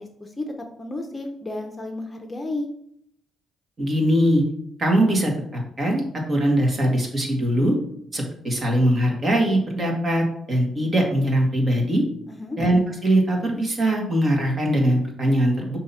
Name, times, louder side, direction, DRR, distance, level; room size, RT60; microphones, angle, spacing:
voice 1, 0.0-2.7 12.3-12.6, left 2 dB, 20° left, 3 dB, 0.8 m, -32 dB
voice 2, 3.8-4.4 4.8-6.0 6.3-7.8 8.1-12.0 12.6-15.8, right 1 dB, 40° right, 0 dB, 1.8 m, -21 dB
6.1 x 2.9 x 5.6 m, 0.71 s
cardioid pair, 90°, 0 cm